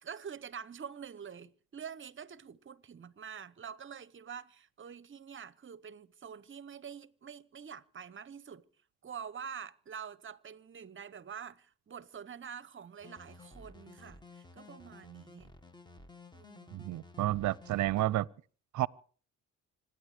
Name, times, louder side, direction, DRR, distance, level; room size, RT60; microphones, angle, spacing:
voice 1, 0.0-8.6 9.0-15.5 16.3-16.9, right 7 dB, 35° right, 0.9 m, -46 dB
sound 1, 13.0-18.0, left 3 dB, 15° left, 1.7 m, -54 dB
voice 2, 16.7-18.3 18.7-18.9, right 15 dB, 60° right, 0.7 m, -30 dB
26.0 x 9.9 x 5.0 m
cardioid pair, 80°, 33 cm